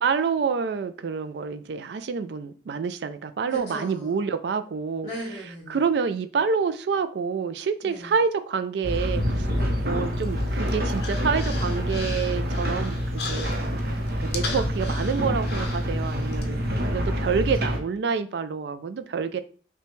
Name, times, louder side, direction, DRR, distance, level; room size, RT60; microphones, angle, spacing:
voice 1, 0.0-5.1 5.7-9.5 9.8-13.8 14.2-16.6 16.9-19.4, right 5 dB, 70° right, 0.3 m, -27 dB
voice 2, 3.5-4.1 5.0-5.8 7.8-8.1 9.5-9.9 16.4-17.0, right 1 dB, 20° left, 1.1 m, -38 dB
sound 1, 8.8-17.8, equal, 55° right, 0.7 m, -27 dB
Human voice, 10.2-16.4, left 4 dB, 65° left, 0.6 m, -38 dB
5.8 x 2.2 x 3.1 m
head